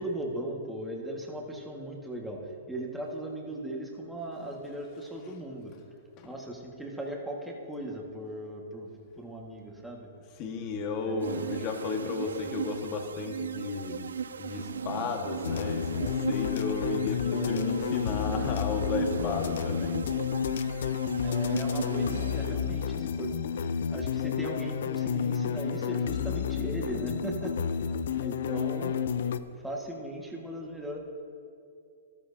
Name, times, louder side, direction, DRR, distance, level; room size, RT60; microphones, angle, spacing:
voice 1, 0.0-5.7 6.2-8.9 9.2-10.1 11.1-11.6 17.3-17.7 21.2-27.9 28.2-29.0 29.6-31.0, right 1 dB, 5° right, -1 dB, 1.7 m, -38 dB
voice 2, 10.4-14.0 14.4-20.1, left 4 dB, 40° left, 3 dB, 1.6 m, -34 dB
sound 1, 11.2-23.0, right 7 dB, 85° right, 0.4 m, -38 dB
sound 2, 15.4-29.4, left 7 dB, 70° left, 0.5 m, -30 dB
14.0 x 13.5 x 2.8 m, 2.4 s
hypercardioid pair, 125°, 0 cm